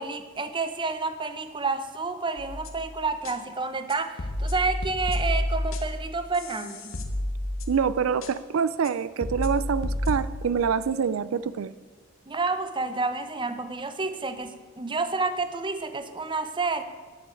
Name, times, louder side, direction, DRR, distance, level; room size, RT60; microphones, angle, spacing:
voice 1, 0.0-7.0 12.3-16.8, right 3 dB, 25° right, 10 dB, 0.7 m, -29 dB
sound 1, 2.4-2.8 3.2-3.3 3.9-6.1 6.3-7.9 8.2-8.3 8.8-8.9 9.2-10.6, left 1 dB, 80° left, 1.2 m, -30 dB
voice 2, 7.7-11.7, right 6 dB, 90° right, 15 dB, 0.4 m, -26 dB
9.7 x 7.0 x 8.3 m, 1.4 s
head